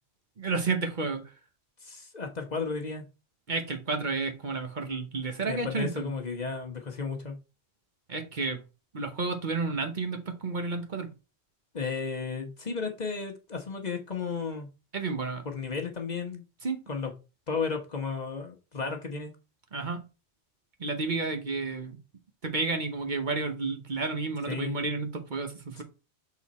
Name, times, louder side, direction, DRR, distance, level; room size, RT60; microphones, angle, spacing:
voice 1, 0.4-1.2 3.5-6.1 8.1-8.6 8.9-11.1 14.9-15.4 16.6-16.8 19.7-20.1 20.8-22.0 22.4-25.8, right 3 dB, 50° right, 1.0 m, -31 dB
voice 2, 1.8-3.1 5.5-7.4 11.7-14.7 15.4-16.4 16.9-17.1 17.5-19.3 24.5-24.8 25.7-25.8, left 4 dB, 40° left, 1.1 m, -33 dB
6.3 x 3.8 x 4.1 m
omnidirectional pair, 1.1 m